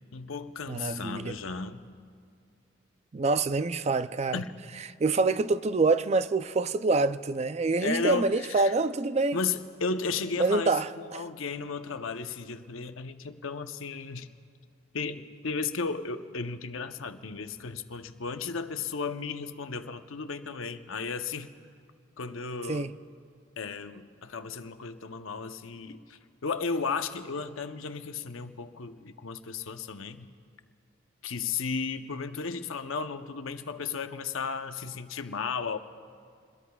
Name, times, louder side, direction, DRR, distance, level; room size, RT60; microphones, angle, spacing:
voice 1, 0.1-1.8 4.3-4.5 7.8-8.7 9.3-14.3 14.9-21.5 22.2-22.9 23.6-30.3 31.2-35.8, left 4 dB, 85° left, 0.8 m, -34 dB
voice 2, 0.7-1.4 3.1-4.4 5.0-9.4 10.4-11.2 22.7-22.9, right 3 dB, 35° right, 0.4 m, -26 dB
28.0 x 21.5 x 2.3 m
head